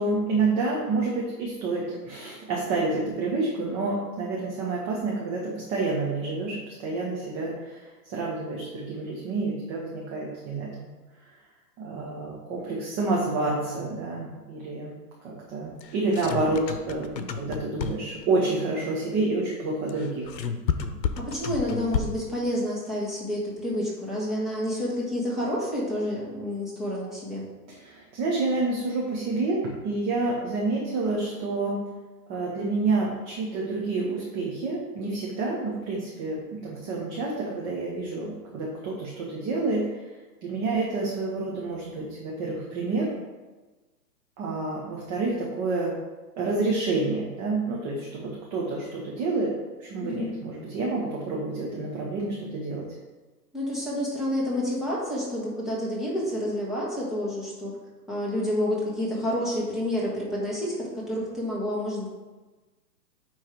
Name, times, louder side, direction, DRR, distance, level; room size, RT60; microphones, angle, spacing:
voice 1, 0.0-10.9 11.8-14.9 15.2-20.3 27.7-31.8 32.3-40.0 40.4-43.1 44.4-46.0 46.4-49.5 49.8-52.9, right 3 dB, 20° right, -3 dB, 0.7 m, -28 dB
sound 1, 15.8-18.2 19.9-22.4, left 6 dB, 90° left, 0.8 m, -31 dB
voice 2, 21.2-27.5 50.0-50.3 53.5-57.8 58.1-62.1, left 1 dB, ahead, -7 dB, 1.2 m, -29 dB
8.8 x 3.2 x 4.4 m, 1.2 s
hypercardioid pair, 145°, 50 cm